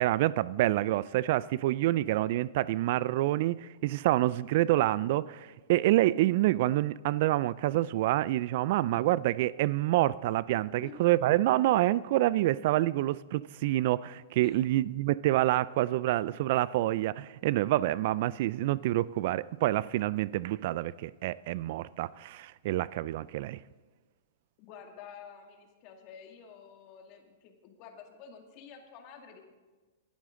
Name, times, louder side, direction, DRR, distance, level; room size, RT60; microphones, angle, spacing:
voice 1, 0.0-23.6, right 15 dB, 55° right, 0.3 m, -27 dB
voice 2, 10.8-11.1 14.4-14.6 24.6-29.5, left 7 dB, 45° left, 2.2 m, -50 dB
19.5 x 11.5 x 3.8 m
hypercardioid pair, 120°, 0 cm